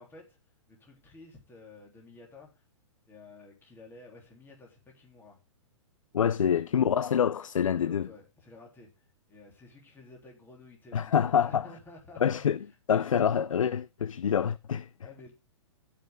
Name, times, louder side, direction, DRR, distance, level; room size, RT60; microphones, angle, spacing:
voice 1, 0.0-2.6 3.1-5.4 6.3-6.9 7.8-12.4 14.3-14.4 15.0-15.3, left 2 dB, 15° left, 3.6 m, -52 dB
voice 2, 6.1-8.1 10.9-11.7 12.2-12.6 12.9-14.9, left 8 dB, 90° left, 0.5 m, -26 dB
15.5 x 5.9 x 3.7 m
hypercardioid pair, 130°, 16 cm